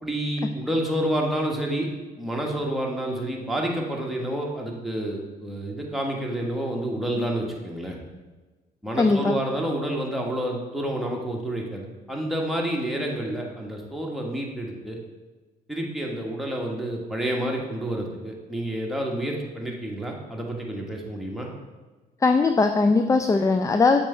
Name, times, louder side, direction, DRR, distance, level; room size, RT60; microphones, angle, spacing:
voice 1, 0.0-1.9 2.2-8.0 8.8-15.0 15.7-21.5, right 1 dB, ahead, -1 dB, 1.5 m, -29 dB
voice 2, 9.0-9.4 22.2-24.0, left 3 dB, 15° left, 6 dB, 0.4 m, -20 dB
7.1 x 4.3 x 3.5 m, 1.2 s
hypercardioid pair, 55°, 21 cm